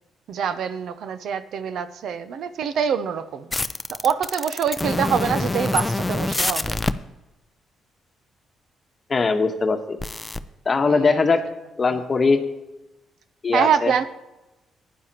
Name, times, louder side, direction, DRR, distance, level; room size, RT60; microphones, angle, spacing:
voice 1, 0.3-3.5 3.9-6.8 10.9-11.2 11.9-12.0 13.5-14.0, right 7 dB, 70° right, 12 dB, 0.7 m, -25 dB
sound 1, 3.5-6.9 10.0-10.4, left 2 dB, 15° left, 0.5 m, -25 dB
voice 2, 9.1-10.0 10.6-11.4 11.8-12.4 13.4-13.9, left 4 dB, 35° left, 6 dB, 1.2 m, -20 dB
15.0 x 10.5 x 3.0 m, 1.0 s
cardioid pair, 90°, 0 cm